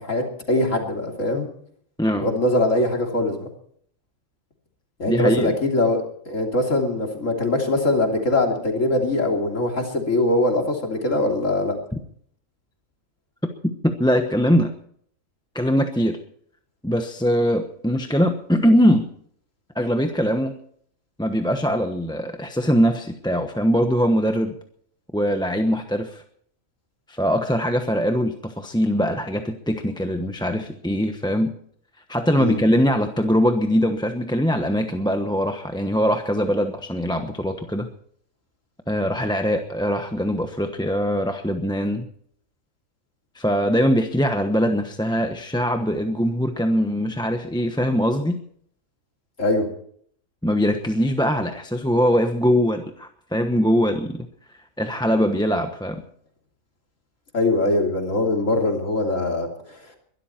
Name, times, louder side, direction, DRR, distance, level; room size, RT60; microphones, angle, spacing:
voice 1, 0.0-1.5 2.1-3.5 5.0-11.8 32.4-32.6 49.4-49.7 57.3-59.8, left 2 dB, 65° left, 2 dB, 3.4 m, -22 dB
voice 2, 5.1-5.5 13.8-14.7 15.5-16.2 16.8-19.1 19.7-20.5 21.2-24.5 25.1-26.2 27.1-31.5 32.1-37.9 38.9-42.1 43.3-48.4 50.4-54.3 54.8-56.0, equal, 5° left, 5 dB, 0.9 m, -22 dB
22.5 x 12.5 x 4.4 m, 0.62 s
omnidirectional pair, 1.4 m